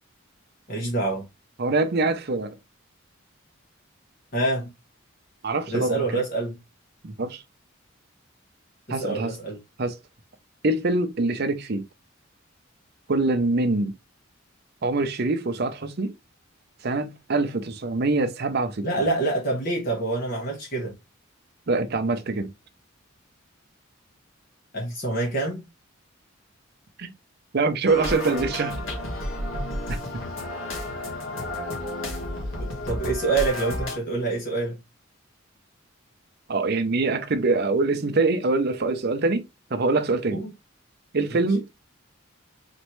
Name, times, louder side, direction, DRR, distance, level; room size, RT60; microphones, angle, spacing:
voice 1, 0.7-1.2 4.3-4.7 5.7-6.5 8.9-9.6 18.8-20.9 24.7-25.6 32.6-34.8 40.3-40.5 41.3-41.7, right 2 dB, 45° left, 1.4 m, -27 dB
voice 2, 1.6-2.6 5.4-6.2 7.0-7.4 8.9-9.3 9.8-10.0 10.6-11.8 13.1-13.9 14.8-16.1 16.8-19.1 21.7-22.5 27.0-27.1 27.5-28.8 29.9-30.0 36.5-39.4 39.7-40.4 41.1-41.6, right 3 dB, 50° right, 0.6 m, -24 dB
sound 1, 27.9-34.0, left 1 dB, 80° left, 1.5 m, -31 dB
4.2 x 3.1 x 3.1 m
head